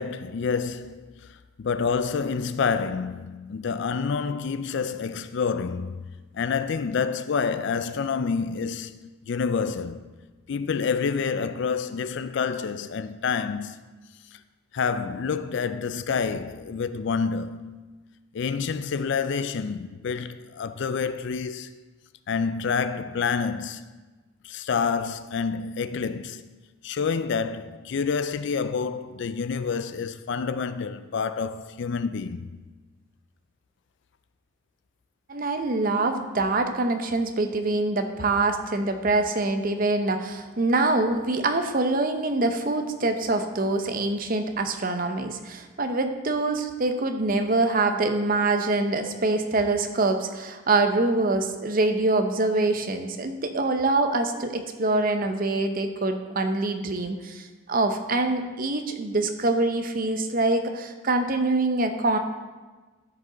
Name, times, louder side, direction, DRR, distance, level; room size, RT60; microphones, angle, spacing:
voice 1, 0.0-6.0 6.3-8.9 9.3-10.0 10.5-13.8 14.3-14.4 14.7-17.8 18.3-21.7 22.3-23.9 24.4-26.5 26.8-32.5, left 5 dB, 55° left, 0.4 m, -28 dB
voice 2, 35.3-62.2, right 2 dB, 40° right, 0.7 m, -25 dB
13.0 x 5.2 x 3.8 m
head